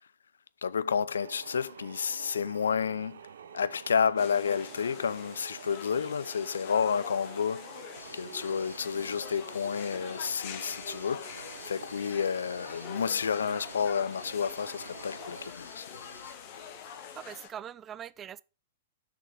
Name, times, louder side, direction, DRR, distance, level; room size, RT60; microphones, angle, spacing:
voice 1, 0.6-3.2 3.5-7.7 8.1-15.9, left 6 dB, 65° left, 0.4 m, -30 dB
sound 1, 1.2-15.5, right 7 dB, 65° right, 0.6 m, -48 dB
sound 2, 4.2-17.5, left 8 dB, 40° left, 1.2 m, -45 dB
sound 3, 8.0-17.3, left 1 dB, 85° left, 0.8 m, -52 dB
voice 2, 17.1-18.4, right 9 dB, 20° right, 0.3 m, -42 dB
6.5 x 6.0 x 4.7 m
figure-of-eight pair, 105°, 0 cm